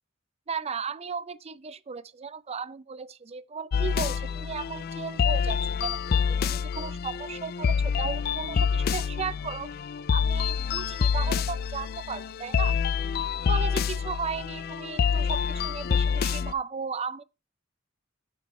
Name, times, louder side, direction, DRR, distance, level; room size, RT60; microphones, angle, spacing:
voice 1, 0.5-9.7 10.1-12.8 13.4-17.2, right 5 dB, 30° right, 0.5 m, -35 dB
sound 1, 3.7-16.5, left 6 dB, 50° left, 0.4 m, -27 dB
9.1 x 7.1 x 3.2 m
head